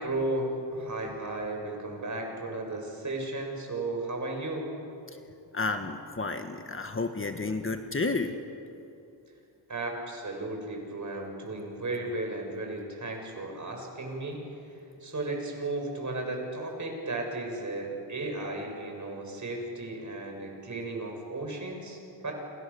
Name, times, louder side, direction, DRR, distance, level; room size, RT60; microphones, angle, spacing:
voice 1, 0.0-4.7 9.7-14.6 15.0-22.3, right 2 dB, 40° right, 2 dB, 6.9 m, -34 dB
voice 2, 5.5-8.3, left 3 dB, 30° left, 6 dB, 1.6 m, -31 dB
30.0 x 28.0 x 7.1 m, 2.7 s
wide cardioid pair, 100°, 43 cm